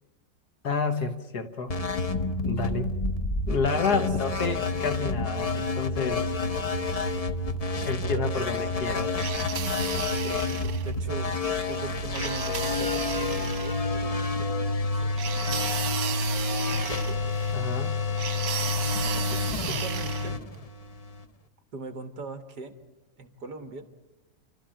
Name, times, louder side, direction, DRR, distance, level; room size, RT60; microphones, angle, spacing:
voice 1, 0.6-1.8 2.4-2.9 3.5-6.3 7.8-9.1 17.5-18.0, left 4 dB, 65° left, 7 dB, 1.9 m, -30 dB
sound 1, 1.7-21.2, left 3 dB, 45° left, 0.5 m, -29 dB
voice 2, 8.0-8.5 10.1-15.7 16.8-17.2 19.3-20.4 21.7-22.7 23.2-23.8, right 3 dB, 65° right, 8 dB, 2.0 m, -41 dB
sound 2, 9.2-10.9 12.2-13.8 15.2-17.5 18.2-20.3, right 9 dB, 90° right, 1.8 m, -34 dB
30.0 x 13.0 x 8.9 m, 1.1 s
omnidirectional pair, 1.9 m